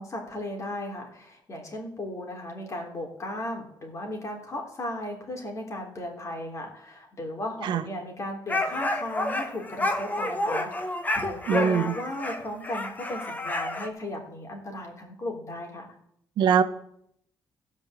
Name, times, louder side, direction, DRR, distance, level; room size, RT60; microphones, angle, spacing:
voice 1, 0.0-15.9, left 1 dB, 40° left, 1 dB, 3.4 m, -36 dB
sound 1, 8.5-13.9, left 1 dB, 20° left, 1.3 m, -29 dB
voice 2, 11.5-11.9 16.4-16.6, right 8 dB, 75° right, 9 dB, 1.0 m, -22 dB
14.5 x 5.3 x 7.6 m, 0.71 s
cardioid pair, 100°, 8 cm